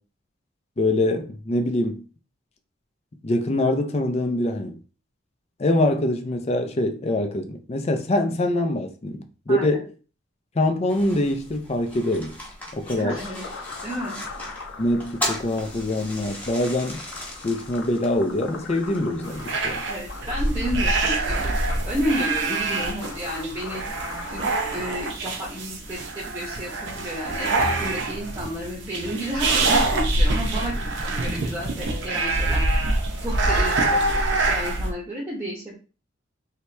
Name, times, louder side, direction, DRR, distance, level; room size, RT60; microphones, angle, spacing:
voice 1, 0.8-2.0 3.2-4.8 5.6-9.9 10.5-12.4 12.7-13.2 14.8-17.1 17.4-19.8, left 1 dB, 30° left, 0.5 m, -24 dB
voice 2, 9.5-9.8 12.9-13.4 13.8-14.2 19.9-21.5 21.9-23.8 24.3-32.6 33.2-35.8, equal, 15° right, 0.9 m, -31 dB
sound 1, 10.9-25.0, left 1 dB, 10° left, 0.9 m, -39 dB
sound 2, 13.1-24.9, left 4 dB, 80° left, 0.8 m, -41 dB
sound 3, 19.3-34.9, right 2 dB, 60° right, 0.7 m, -25 dB
3.0 x 2.8 x 3.2 m
head